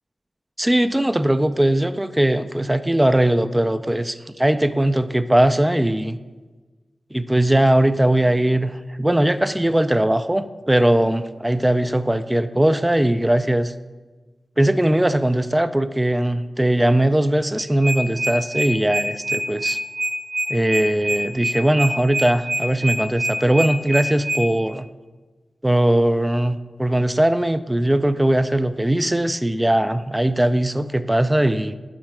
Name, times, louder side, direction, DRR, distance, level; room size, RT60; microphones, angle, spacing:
voice 1, 0.6-6.2 7.1-13.7 14.6-19.8 20.5-24.9 25.6-31.7, right 1 dB, 15° right, 12 dB, 0.3 m, -19 dB
sound 1, 17.6-24.4, right 1 dB, 90° right, 2.5 m, -25 dB
7.4 x 4.6 x 4.9 m, 1.3 s
cardioid pair, 50°, 0 cm